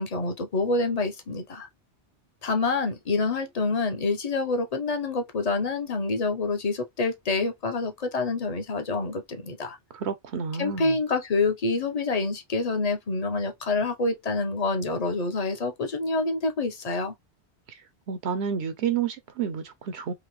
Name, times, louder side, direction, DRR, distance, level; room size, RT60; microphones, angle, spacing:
voice 1, 0.0-1.7 2.4-9.8 10.6-17.1, left 3 dB, 40° left, 0.8 m, -27 dB
voice 2, 9.9-11.0 18.1-20.1, right 7 dB, 75° right, 0.9 m, -30 dB
3.8 x 2.8 x 3.0 m
omnidirectional pair, 1.2 m